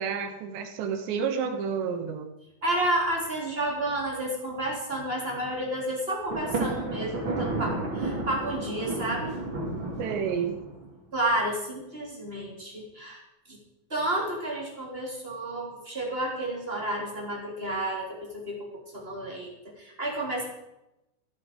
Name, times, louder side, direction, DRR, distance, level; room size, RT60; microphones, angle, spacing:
voice 1, 0.0-2.3 10.0-10.6, right 6 dB, 65° right, 6 dB, 3.4 m, -30 dB
voice 2, 2.6-9.3 11.1-13.2 13.5-13.6 13.9-18.6 18.9-19.5 19.8-20.5, right 1 dB, 15° right, -2 dB, 2.4 m, -31 dB
Thunder, 6.3-10.9, right 2 dB, 30° right, 2.5 m, -32 dB
15.0 x 12.0 x 5.2 m, 0.89 s
omnidirectional pair, 6.0 m